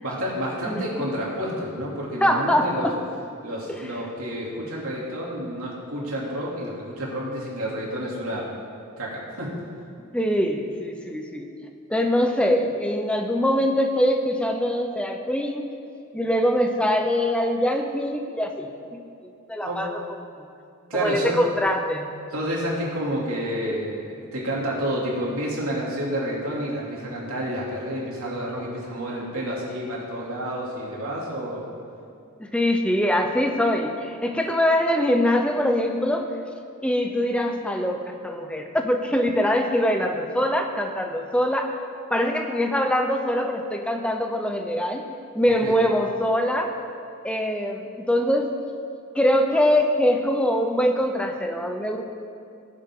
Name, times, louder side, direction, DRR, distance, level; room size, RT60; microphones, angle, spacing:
voice 1, 0.0-2.9 3.4-8.4 9.0-9.5 19.6-19.8 20.9-21.4 22.3-31.7 45.6-45.8, equal, 70° right, -4 dB, 2.9 m, -29 dB
voice 2, 2.2-2.7 10.1-11.5 11.9-15.6 16.1-20.0 20.9-22.1 32.4-36.3 36.8-41.8 42.1-45.0 45.3-46.7 47.2-48.5 49.1-52.0, equal, 5° left, 4 dB, 0.8 m, -23 dB
19.0 x 7.3 x 3.8 m, 2.6 s
head